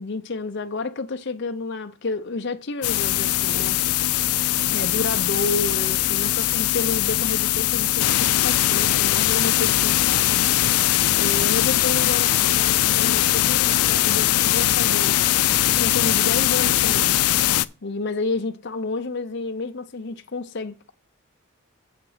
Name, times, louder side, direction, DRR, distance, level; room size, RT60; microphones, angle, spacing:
voice 1, 0.0-3.8 4.7-10.3 11.2-15.2 15.8-17.2 17.8-20.9, left 3 dB, 55° left, 0.7 m, -30 dB
sound 1, 2.8-17.6, left 13 dB, 90° left, 0.4 m, -21 dB
7.8 x 6.7 x 4.9 m
head